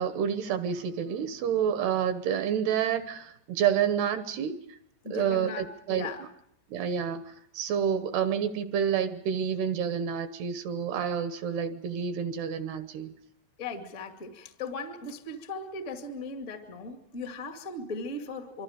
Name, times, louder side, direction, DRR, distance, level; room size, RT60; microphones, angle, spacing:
voice 1, 0.0-4.6 5.1-6.1 6.7-13.1, right 8 dB, 75° right, 10 dB, 2.9 m, -29 dB
voice 2, 5.0-6.3 13.6-18.6, left 3 dB, 30° left, 4 dB, 1.5 m, -38 dB
26.0 x 25.0 x 5.1 m, 0.69 s
omnidirectional pair, 5.1 m